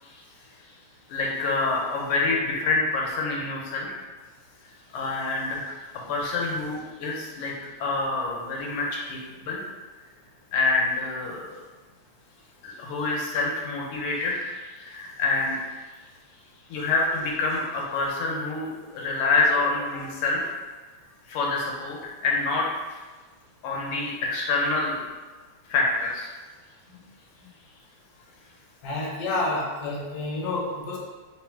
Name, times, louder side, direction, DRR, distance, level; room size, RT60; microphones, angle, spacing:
voice 1, 1.1-3.9 4.9-5.8 6.1-7.5 7.8-9.6 10.5-11.5 12.6-15.6 16.7-20.5 21.3-23.0 23.6-25.0 25.7-26.3, left 3 dB, 85° left, -3 dB, 1.6 m, -27 dB
voice 2, 28.8-31.0, left 2 dB, 65° left, -3 dB, 1.2 m, -29 dB
3.8 x 2.1 x 4.4 m, 1.3 s
omnidirectional pair, 2.4 m